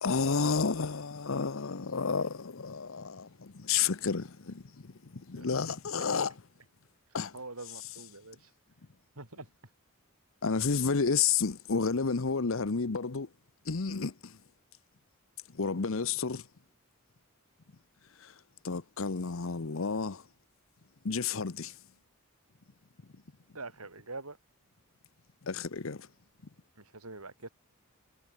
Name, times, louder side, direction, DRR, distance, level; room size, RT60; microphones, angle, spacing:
voice 1, 0.0-6.4 7.1-7.4 10.4-13.3 13.6-14.4 15.5-16.5 18.2-20.3 21.0-21.8 25.4-26.1, left 5 dB, 65° left, 0.8 m, -31 dB
voice 2, 7.3-8.5 9.2-9.5 23.5-24.4 26.8-27.5, right 3 dB, 85° right, 5.6 m, -44 dB
head